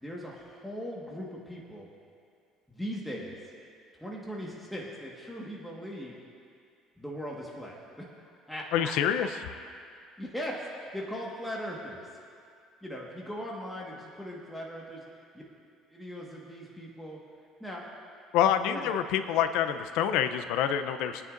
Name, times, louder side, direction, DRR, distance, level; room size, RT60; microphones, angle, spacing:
voice 1, 0.0-1.9 2.7-3.3 4.0-6.2 7.0-9.3 10.2-10.6 10.9-12.0 12.8-15.0 15.3-15.4 15.9-17.2 17.6-17.8 18.6-18.9, equal, 5° left, -4 dB, 1.5 m, -39 dB
voice 2, 8.7-9.3 18.3-21.2, left 9 dB, 80° left, 10 dB, 0.6 m, -26 dB
24.0 x 9.6 x 2.6 m, 2.3 s
cardioid pair, 135°, 0 cm